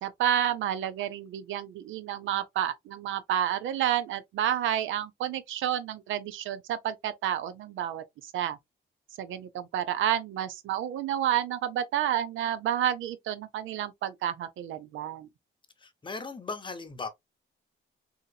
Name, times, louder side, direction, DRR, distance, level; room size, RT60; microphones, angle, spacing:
voice 1, 0.0-8.6 9.2-15.3, right 11 dB, 80° right, 0.5 m, -30 dB
voice 2, 15.8-17.1, left 4 dB, 25° left, 0.8 m, -37 dB
3.8 x 2.8 x 2.2 m
cardioid pair, 90°, 20 cm